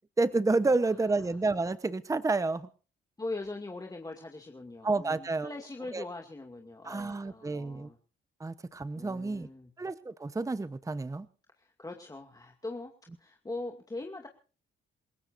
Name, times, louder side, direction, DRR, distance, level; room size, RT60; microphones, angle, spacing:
voice 1, 0.2-2.7 4.8-5.5 5.9-6.0 6.8-7.9 8.4-9.5 9.8-11.3, right 3 dB, 15° right, 13 dB, 0.9 m, -29 dB
voice 2, 3.2-8.0 8.9-9.7 11.6-12.9 13.2-14.3, left 2 dB, 20° left, 2 dB, 2.4 m, -41 dB
28.0 x 16.5 x 2.6 m, 0.38 s
cardioid pair, 90°, 20 cm